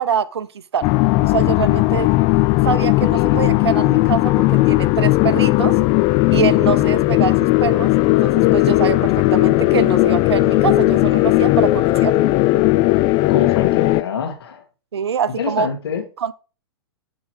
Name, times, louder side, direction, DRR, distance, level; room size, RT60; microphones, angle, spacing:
voice 1, 0.0-2.1 2.6-5.7 6.3-12.1 14.9-15.7 16.2-16.3, right 7 dB, 80° right, 0.5 m, -24 dB
sound 1, 0.8-14.0, left 19 dB, 35° left, 0.3 m, -16 dB
voice 2, 13.3-14.6 15.4-16.0, left 7 dB, 70° left, 1.9 m, -26 dB
7.9 x 3.8 x 4.5 m
hypercardioid pair, 110°, 14 cm